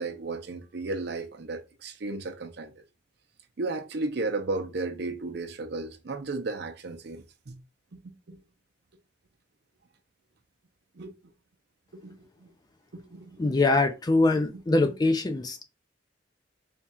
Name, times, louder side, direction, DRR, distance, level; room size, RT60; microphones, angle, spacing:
voice 1, 0.0-2.8 3.6-7.6 8.0-8.4 11.0-11.1 11.9-12.5 12.9-13.6 14.4-14.9, right 3 dB, 60° right, 0.6 m, -35 dB
voice 2, 13.4-15.6, left 2 dB, 20° left, 0.4 m, -23 dB
3.5 x 2.4 x 4.2 m
head